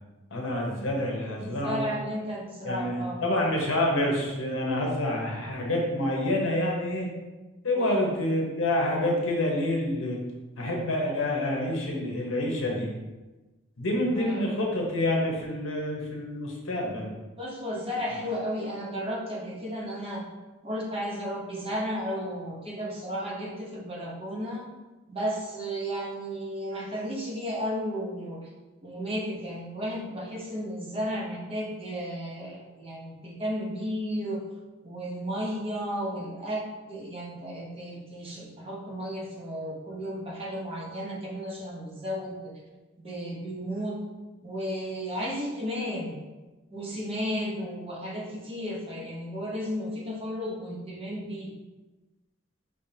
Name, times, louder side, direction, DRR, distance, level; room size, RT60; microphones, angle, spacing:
voice 1, 0.3-1.8 2.6-7.1 7.6-10.2 10.6-12.9 13.8-17.1, left 1 dB, 60° left, -1 dB, 0.9 m, -27 dB
voice 2, 1.5-3.2 7.7-8.2 14.1-14.5 17.4-20.3 20.6-24.7 25.1-28.5 28.8-34.4 34.8-36.6 36.9-42.5 43.0-44.0 44.4-46.2 46.7-51.5, equal, 25° right, -4 dB, 0.8 m, -33 dB
5.3 x 3.6 x 2.8 m, 1.1 s
head